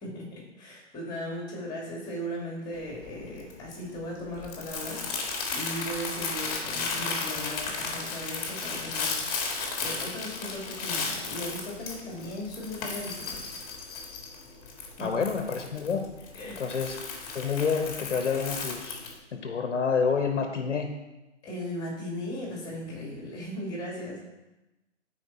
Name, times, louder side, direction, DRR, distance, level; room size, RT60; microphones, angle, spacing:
voice 1, 0.0-9.2 9.8-13.4 15.0-15.2 16.3-16.8 21.4-24.2, equal, 10° left, -3 dB, 2.8 m, -37 dB
Crumpling crinkling, 2.7-19.2, left 4 dB, 30° left, 1.8 m, -35 dB
voice 2, 15.0-16.1 16.6-17.0 17.3-19.0 19.3-20.9, left 5 dB, 70° left, 4 dB, 1.3 m, -28 dB
12.5 x 5.1 x 4.4 m, 1.0 s
hypercardioid pair, 150°, 37 cm